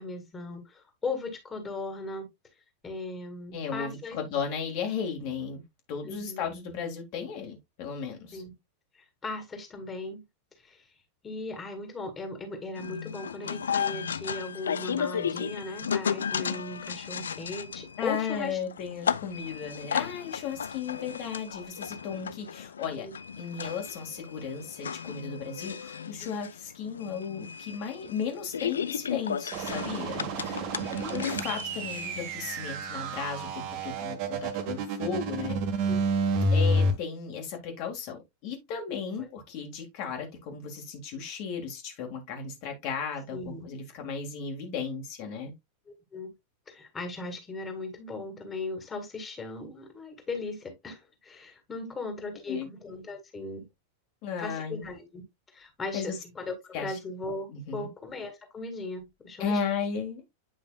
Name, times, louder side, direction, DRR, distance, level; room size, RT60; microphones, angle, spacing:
voice 1, 0.0-2.3 2.8-4.2 6.1-6.4 8.3-8.5 8.9-10.2 10.6-10.9 11.2-18.6 22.9-23.1 26.2-26.3 31.0-31.2 33.4-33.5 35.8-36.0 39.2-39.3 43.3-43.7 45.9-46.3 46.7-53.6 54.4-55.2 55.5-59.6, left 3 dB, 20° left, 2.0 m, -38 dB
voice 2, 3.5-5.6 5.9-8.4 18.0-23.1 23.4-30.7 31.1-35.6 36.5-45.5 51.8-51.9 52.5-52.7 54.2-54.8 55.9-56.1 56.7-57.0 57.5-57.9 59.4-60.3, left 6 dB, 45° left, 1.8 m, -35 dB
sound 1, 12.8-32.3, left 7 dB, 70° left, 0.4 m, -34 dB
sound 2, 29.5-36.9, right 1 dB, 40° right, 1.4 m, -29 dB
9.2 x 5.4 x 2.3 m
figure-of-eight pair, 90°, 0 cm